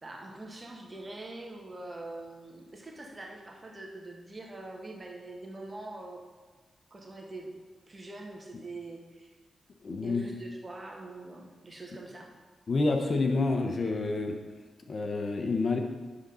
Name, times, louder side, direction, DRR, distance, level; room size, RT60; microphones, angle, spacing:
voice 1, 0.0-6.2 6.9-7.5 7.9-9.3 10.0-12.3, right 2 dB, 30° right, 0 dB, 1.7 m, -43 dB
voice 2, 9.8-10.2 12.7-14.4 14.9-15.8, left 3 dB, 55° left, 4 dB, 1.0 m, -28 dB
10.0 x 4.0 x 5.6 m, 1.3 s
cardioid pair, 55°, 0 cm